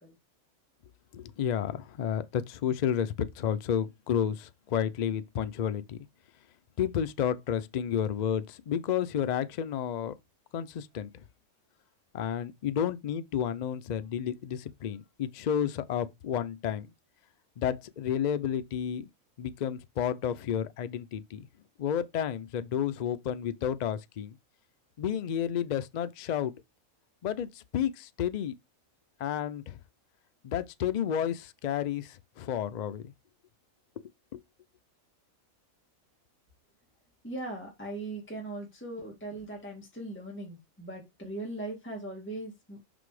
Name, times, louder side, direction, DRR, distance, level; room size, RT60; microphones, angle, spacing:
voice 1, 1.1-6.0 6.8-10.1 10.5-11.2 12.1-16.9 17.6-19.1 19.4-21.5 21.8-24.4 25.0-26.6 27.2-28.5 29.2-29.8 30.4-33.1 34.3-34.4, left 9 dB, 85° left, 0.3 m, -31 dB
voice 2, 37.2-42.8, right 2 dB, 10° left, 1.9 m, -39 dB
5.8 x 4.0 x 4.7 m
omnidirectional pair, 1.4 m